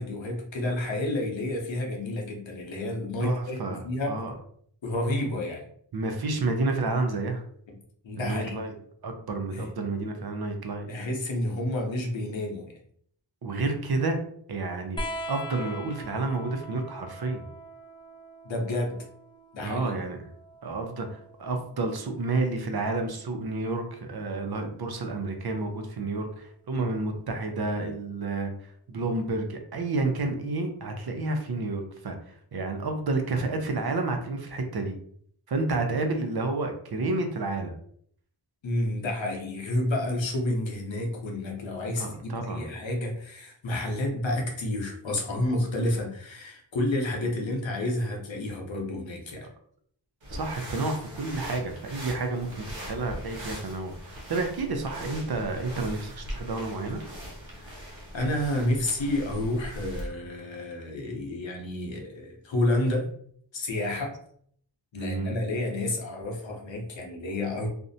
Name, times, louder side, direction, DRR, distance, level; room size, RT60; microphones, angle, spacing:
voice 1, 0.0-4.2 4.8-5.6 8.0-8.6 9.5-9.7 10.9-12.7 18.4-19.0 19.5-20.0 26.7-26.9 38.6-49.5 57.5-63.1 63.5-64.1 64.9-67.7, left 1 dB, 75° left, 1 dB, 0.8 m, -30 dB
voice 2, 3.2-4.3 5.9-7.4 8.2-8.7 9.0-10.9 13.4-14.2 14.5-15.0 15.3-17.4 19.6-20.2 20.6-28.5 28.9-32.2 32.5-34.9 35.5-37.7 42.0-42.6 50.3-57.0 65.0-65.4, right 3 dB, 55° right, 5 dB, 0.6 m, -30 dB
sound 1, 15.0-22.0 23.4-24.2 25.5-25.6, equal, 10° left, 0.4 m, -42 dB
sound 2, 50.2-60.1, equal, 85° right, 0.8 m, -40 dB
2.5 x 2.1 x 2.6 m, 0.62 s
wide cardioid pair, 45°, 45 cm